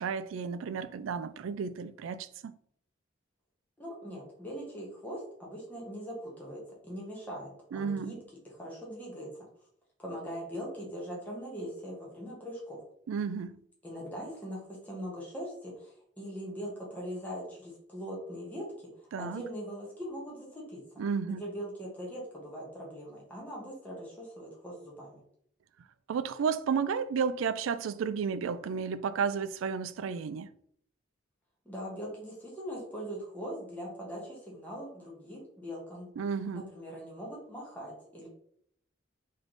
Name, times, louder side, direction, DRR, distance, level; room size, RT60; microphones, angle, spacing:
voice 1, 0.0-2.5 7.7-8.2 13.1-13.6 19.1-19.5 21.0-21.4 26.1-30.5 36.2-36.7, right 6 dB, 85° right, 0.3 m, -32 dB
voice 2, 3.8-8.2 8.4-9.3 10.0-12.8 13.8-18.9 19.2-21.0 21.3-25.2 31.6-36.1 36.5-38.3, equal, 10° left, 1.1 m, -41 dB
3.2 x 3.2 x 3.9 m
head